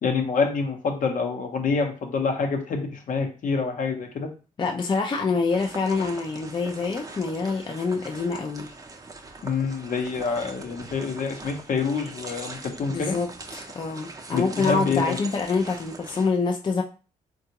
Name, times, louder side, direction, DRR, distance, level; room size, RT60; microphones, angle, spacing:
voice 1, 0.0-4.3 9.4-13.2 14.3-15.2, left 5 dB, 60° left, 4 dB, 0.8 m, -26 dB
voice 2, 4.6-8.7 12.9-16.8, left 4 dB, 30° left, 2 dB, 0.4 m, -26 dB
sound 1, 5.5-16.3, right 3 dB, 25° right, 0.5 m, -42 dB
3.6 x 2.3 x 2.8 m, 0.35 s
cardioid pair, 80°, 16 cm